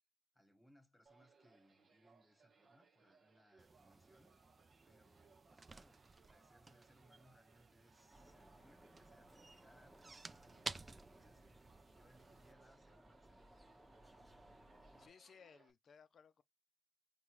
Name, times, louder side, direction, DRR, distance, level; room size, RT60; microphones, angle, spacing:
voice 1, 0.3-4.6 4.8-13.5, equal, 10° left, 1.2 m, -71 dB
sound 1, 1.1-15.7, right 4 dB, 70° right, 0.8 m, -70 dB
sound 2, 3.6-12.5, right 3 dB, 35° right, 0.3 m, -54 dB
sound 3, 8.1-15.1, right 1 dB, 10° right, 1.0 m, -64 dB
voice 2, 15.0-16.4, left 6 dB, 80° left, 0.4 m, -62 dB
5.0 x 2.2 x 3.0 m
wide cardioid pair, 130°, 0 cm